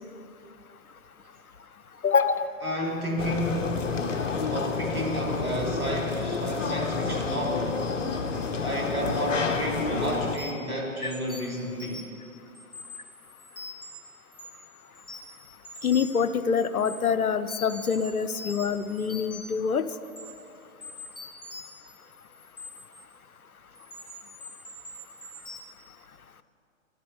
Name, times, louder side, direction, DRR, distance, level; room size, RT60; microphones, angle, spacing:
voice 1, 2.0-2.5 11.0-11.1 15.8-19.9, left 6 dB, 85° left, 13 dB, 0.7 m, -25 dB
voice 2, 2.6-3.9 4.5-7.8 8.6-12.1, equal, 85° right, 0 dB, 2.7 m, -31 dB
sound 1, 3.2-10.4, left 4 dB, 60° left, 1.3 m, -29 dB
sound 2, 10.3-10.7 11.0-12.2 12.5-13.9 14.3-14.7 14.9-16.3 16.6-17.0 17.5-19.6 20.0-20.2 20.8-23.0 23.7-25.6, left 2 dB, 10° left, 1.7 m, -43 dB
11.0 x 8.6 x 8.1 m, 2.6 s
figure-of-eight pair, 120°, 42 cm